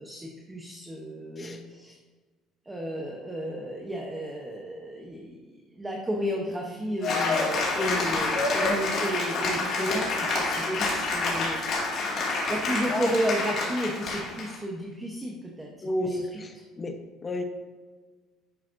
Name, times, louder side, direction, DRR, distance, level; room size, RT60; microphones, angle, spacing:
voice 1, 0.0-2.0 2.6-11.9 12.5-16.4, equal, 10° right, 0 dB, 0.7 m, -33 dB
Cheering / Applause, 7.0-14.5, left 3 dB, 50° left, 2.1 m, -28 dB
voice 2, 7.7-8.3 9.8-10.0 10.6-10.8 12.9-13.1 15.8-17.4, left 1 dB, 20° left, 4 dB, 0.8 m, -32 dB
10.5 x 5.5 x 2.5 m, 1.4 s
cardioid pair, 135°, 0 cm